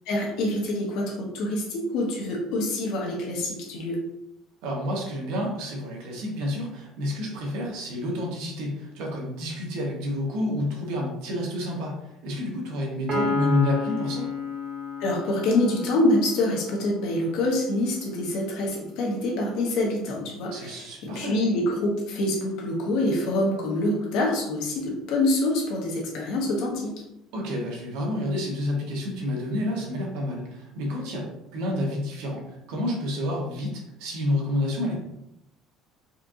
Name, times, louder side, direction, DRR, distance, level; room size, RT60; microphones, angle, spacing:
voice 1, 0.1-4.0 15.0-26.9, left 1 dB, 65° left, -1 dB, 1.0 m, -26 dB
voice 2, 4.6-14.3 20.5-21.4 27.3-34.9, left 1 dB, 75° right, -1 dB, 1.1 m, -29 dB
Piano, 13.1-16.7, left 4 dB, 30° right, 0.7 m, -30 dB
4.3 x 2.6 x 2.5 m, 0.84 s
cardioid pair, 175°, 0 cm